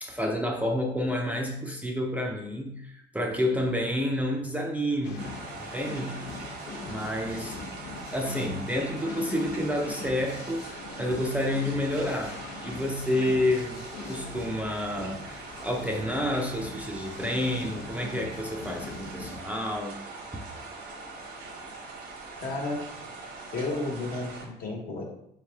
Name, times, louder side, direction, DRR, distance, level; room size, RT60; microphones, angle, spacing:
voice 1, 0.0-5.3 5.6-6.2 6.9-7.8 8.1-13.8 14.1-20.0 20.3-20.4, left 1 dB, 10° right, 1 dB, 0.5 m, -29 dB
sound 1, 5.0-19.4, left 4 dB, 85° left, 0.7 m, -42 dB
sound 2, 5.2-24.5, right 3 dB, 70° right, 1.0 m, -42 dB
voice 2, 22.4-22.8 23.5-25.0, left 2 dB, 60° left, -1 dB, 1.2 m, -32 dB
3.7 x 3.2 x 3.4 m, 0.75 s
cardioid pair, 110°, 17 cm